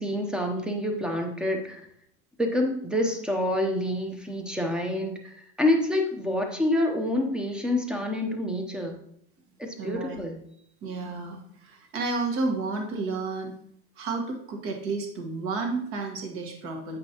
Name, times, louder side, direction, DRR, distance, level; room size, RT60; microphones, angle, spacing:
voice 1, 0.0-1.9 2.4-9.0 9.6-10.4, left 1 dB, 5° right, 3 dB, 0.7 m, -27 dB
voice 2, 9.8-10.2 10.8-13.5 14.0-17.0, right 3 dB, 45° right, 2 dB, 1.5 m, -31 dB
8.2 x 5.1 x 2.9 m, 0.67 s
supercardioid pair, 140°, 31 cm